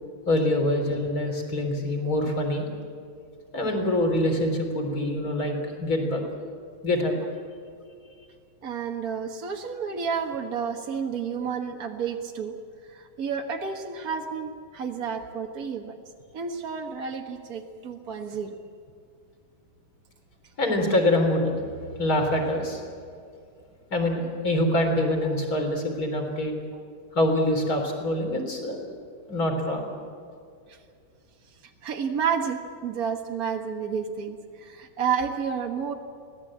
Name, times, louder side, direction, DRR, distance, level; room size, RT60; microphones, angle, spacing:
voice 1, 0.3-2.7 3.5-6.2 6.8-7.1 20.6-21.6 22.0-22.8 23.9-26.5 27.1-28.8 29.3-29.9, left 1 dB, 25° left, 3 dB, 3.8 m, -25 dB
voice 2, 8.6-12.6 12.9-15.9 16.3-18.6 30.7-30.8 31.8-35.9, right 6 dB, 65° right, 2 dB, 0.8 m, -30 dB
25.0 x 17.5 x 8.7 m, 2.3 s
omnidirectional pair, 4.0 m